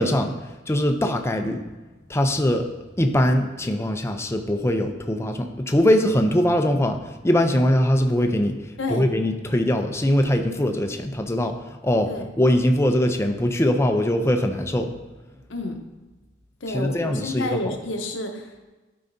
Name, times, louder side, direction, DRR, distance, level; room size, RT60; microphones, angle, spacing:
voice 1, 0.0-1.7 2.1-2.7 3.0-14.9 16.7-17.7, left 1 dB, 15° left, 5 dB, 0.5 m, -22 dB
voice 2, 16.6-18.7, left 2 dB, 80° left, 4 dB, 0.9 m, -30 dB
12.0 x 4.7 x 2.7 m, 1.2 s
head